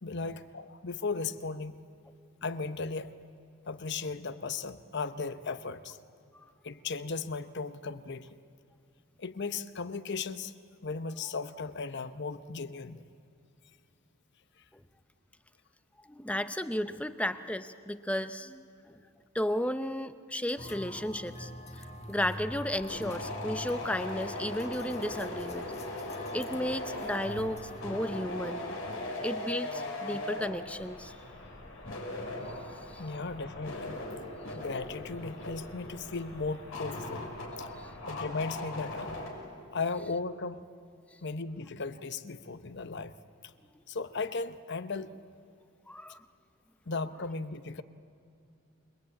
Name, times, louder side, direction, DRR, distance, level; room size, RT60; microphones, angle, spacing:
voice 1, 0.0-1.9 2.4-3.2 3.7-6.0 6.6-8.4 9.2-10.5 10.8-13.0 33.0-34.0 34.5-37.3 37.6-37.7 38.1-39.2 39.7-40.6 41.2-43.2 43.9-45.2 46.9-47.8, left 4 dB, 55° left, 12 dB, 0.9 m, -36 dB
voice 2, 16.1-19.0 19.3-25.7 26.3-28.7 29.2-31.2 32.9-33.0 37.8-37.9 45.9-46.2, left 1 dB, 5° left, 11 dB, 0.7 m, -34 dB
sound 1, 20.6-27.8, left 1 dB, 30° left, 1.6 m, -46 dB
sound 2, 22.3-39.3, left 1 dB, 70° left, 5.7 m, -39 dB
28.5 x 21.5 x 8.6 m, 2.5 s
head